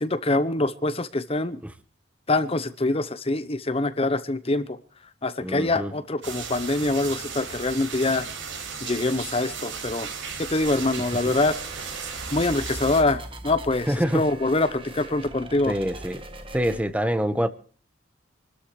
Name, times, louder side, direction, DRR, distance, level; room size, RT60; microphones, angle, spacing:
voice 1, 0.0-1.6 2.3-4.8 5.2-8.3 8.8-10.1 10.4-11.5 12.3-15.7, left 2 dB, 30° left, 0.8 m, -24 dB
voice 2, 5.4-5.9 13.9-14.2 15.7-16.2 16.5-17.5, equal, 5° right, 1.1 m, -25 dB
sound 1, 6.2-13.0, right 6 dB, 70° right, 4.9 m, -35 dB
sound 2, 10.6-16.8, right 1 dB, 25° right, 1.7 m, -40 dB
27.5 x 13.0 x 3.2 m
head